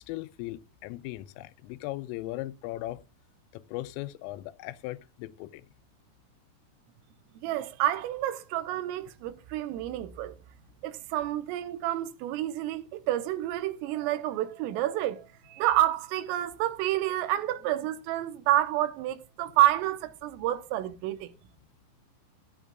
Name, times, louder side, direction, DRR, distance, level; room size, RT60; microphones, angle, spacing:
voice 1, 0.0-3.0 3.5-5.7, left 17 dB, 85° left, 3.2 m, -38 dB
voice 2, 7.4-10.4 10.8-21.3, right 13 dB, 90° right, 3.7 m, -29 dB
15.5 x 11.0 x 2.4 m
omnidirectional pair, 5.9 m